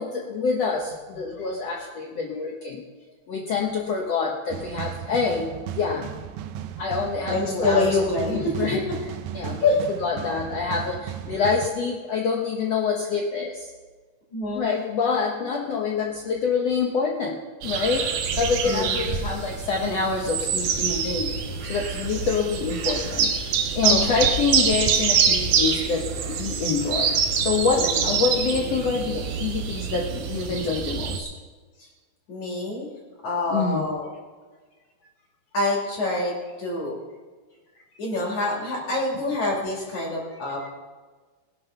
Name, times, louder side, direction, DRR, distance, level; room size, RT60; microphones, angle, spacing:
voice 1, 0.0-2.8 3.3-6.1 6.8-8.0 8.3-8.8 9.3-9.7 10.0-13.7 14.5-21.4 21.7-23.3 23.7-31.3 33.5-33.8, left 5 dB, 75° left, 0 dB, 1.5 m, -26 dB
sound 1, 4.5-11.7, right 10 dB, 90° right, 2.7 m, -36 dB
voice 2, 7.3-8.8 9.6-9.8 14.3-14.8 18.6-18.9 23.8-24.0 27.8-28.1 31.8-31.9 32.3-32.9 33.2-34.1 35.5-37.0 38.0-40.7, left 2 dB, 50° left, -3 dB, 3.8 m, -26 dB
sound 2, 17.6-31.2, right 6 dB, 70° right, 1.8 m, -25 dB
20.0 x 7.8 x 5.8 m, 1.4 s
omnidirectional pair, 4.6 m